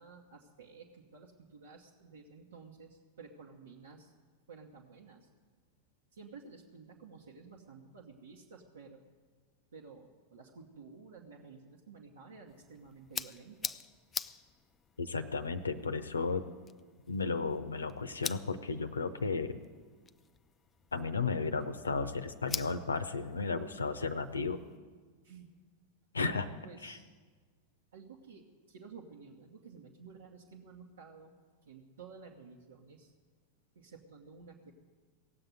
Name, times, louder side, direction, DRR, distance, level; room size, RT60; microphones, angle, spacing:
voice 1, 0.0-4.1 4.5-5.3 6.1-9.2 9.7-13.8 25.2-25.5 26.6-27.1 27.9-31.3 31.6-33.1 33.7-34.7, right 5 dB, 70° right, -2 dB, 1.2 m, -53 dB
sound 1, 12.5-24.8, left 6 dB, 20° left, 0.4 m, -46 dB
voice 2, 15.0-16.4 17.1-19.6 20.9-24.6 26.1-26.5 26.8-27.0, left 4 dB, 75° left, 11 dB, 0.7 m, -34 dB
17.5 x 7.8 x 9.2 m, 1.5 s
figure-of-eight pair, 90°, 0 cm